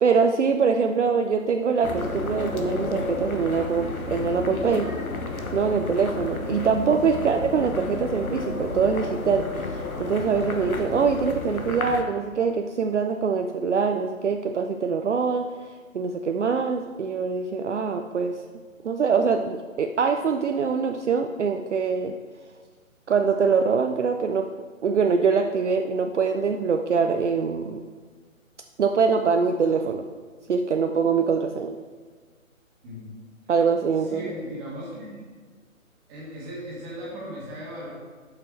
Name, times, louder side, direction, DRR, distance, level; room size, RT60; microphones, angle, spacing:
voice 1, 0.0-4.9 5.5-9.5 9.7-15.5 15.9-18.4 18.8-22.2 23.1-24.5 24.8-27.8 28.8-30.0 30.5-31.8 33.5-34.2, right 5 dB, 60° right, 6 dB, 0.5 m, -23 dB
sound 1, 1.8-12.0, left 3 dB, 85° left, 1.1 m, -31 dB
voice 2, 34.1-35.2 36.1-37.9, equal, 15° right, -6 dB, 1.6 m, -37 dB
7.7 x 5.8 x 4.5 m, 1.5 s
figure-of-eight pair, 145°, 41 cm